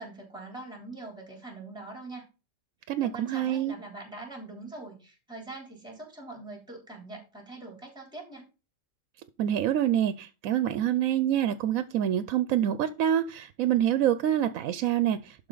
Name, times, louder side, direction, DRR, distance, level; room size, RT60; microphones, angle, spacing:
voice 1, 0.0-2.2 3.0-8.4, right 2 dB, 5° right, 3.3 m, -43 dB
voice 2, 2.9-3.7 9.4-15.5, right 11 dB, 80° right, 1.0 m, -26 dB
11.5 x 4.4 x 3.9 m
omnidirectional pair, 1.4 m